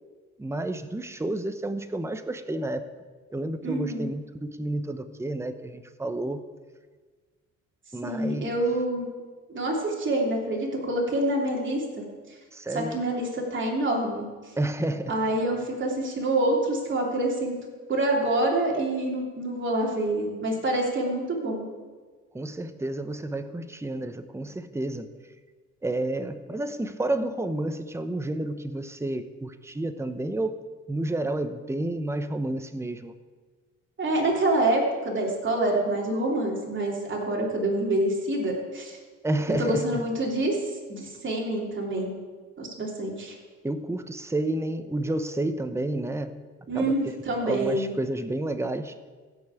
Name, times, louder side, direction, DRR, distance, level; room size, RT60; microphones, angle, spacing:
voice 1, 0.4-2.9 3.3-6.4 7.9-8.5 12.5-13.0 14.6-15.2 22.3-25.1 25.8-30.6 30.9-33.2 39.2-40.0 43.6-46.3 46.7-46.9 47.3-48.9, right 1 dB, 10° right, 10 dB, 0.8 m, -30 dB
voice 2, 3.6-4.1 8.0-9.1 9.5-11.8 12.7-14.3 15.1-17.6 17.9-21.7 34.0-39.0 39.6-40.6 40.9-42.1 42.6-43.4 46.7-47.9, right 1 dB, 40° right, -1 dB, 3.2 m, -26 dB
16.0 x 5.5 x 8.3 m, 1.4 s
cardioid pair, 90°, 30 cm